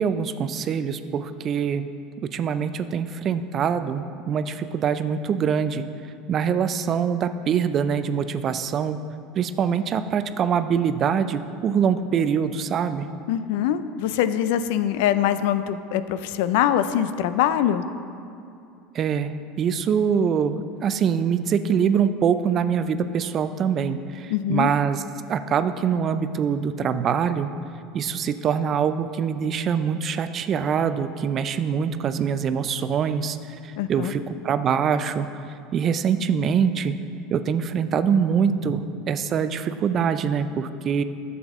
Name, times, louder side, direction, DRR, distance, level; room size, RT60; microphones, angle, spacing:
voice 1, 0.0-1.9 2.2-5.9 6.3-9.0 9.4-13.1 18.9-19.3 19.6-25.0 25.3-27.5 27.9-33.4 33.6-35.3 35.7-37.0 37.3-38.8 39.1-41.0, right 7 dB, 40° right, 11 dB, 0.4 m, -24 dB
voice 2, 13.3-17.8 24.3-24.7 33.8-34.1, left 10 dB, 70° left, 12 dB, 0.4 m, -23 dB
10.5 x 7.2 x 3.6 m, 2.5 s
hypercardioid pair, 85°, 0 cm